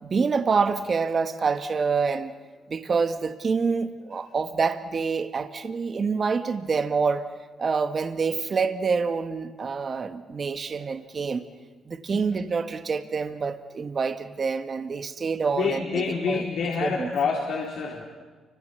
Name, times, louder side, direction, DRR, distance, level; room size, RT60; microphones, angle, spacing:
voice 1, 0.0-2.3 2.7-7.3 7.6-11.4 11.9-16.4 16.8-17.1, right 5 dB, 40° right, 1.8 m, -26 dB
voice 2, 15.6-18.0, left 5 dB, 70° left, 4.0 m, -27 dB
29.5 x 26.0 x 6.9 m
cardioid pair, 90°, 0 cm